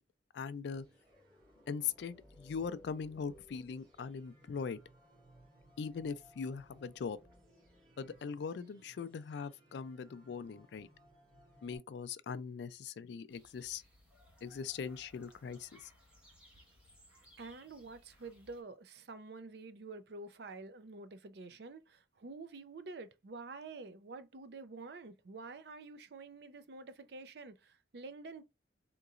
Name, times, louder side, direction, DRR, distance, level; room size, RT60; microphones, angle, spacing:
voice 1, 0.3-0.9 1.7-4.8 5.8-7.2 8.0-10.9 11.6-13.8 14.4-15.7, left 6 dB, 65° left, 0.3 m, -40 dB
sound 1, 0.7-11.8, equal, 45° right, 2.0 m, -62 dB
sound 2, 13.3-18.6, equal, 5° right, 1.2 m, -63 dB
voice 2, 17.4-28.4, right 3 dB, 60° right, 0.5 m, -48 dB
3.7 x 2.9 x 2.4 m
head